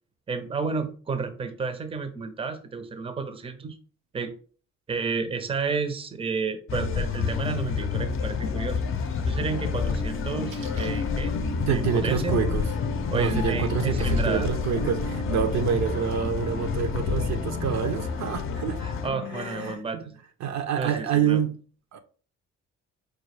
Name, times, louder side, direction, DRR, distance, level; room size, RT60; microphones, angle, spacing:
voice 1, 0.3-3.8 4.1-4.3 4.9-8.8 9.3-12.3 13.1-14.5 18.8-20.2 20.8-21.4, right 4 dB, 20° right, 0.5 m, -31 dB
sound 1, 6.7-19.1, left 5 dB, 45° left, 0.5 m, -29 dB
sound 2, 9.5-19.8, left 3 dB, 85° left, 0.5 m, -38 dB
Splash splatter, 9.8-14.8, right 3 dB, 80° right, 1.1 m, -52 dB
voice 2, 11.7-12.7 13.1-18.8 19.3-20.0 20.4-21.5 21.9-22.0, right 8 dB, 65° right, 0.6 m, -27 dB
4.8 x 2.3 x 3.2 m
cardioid pair, 90°, 30 cm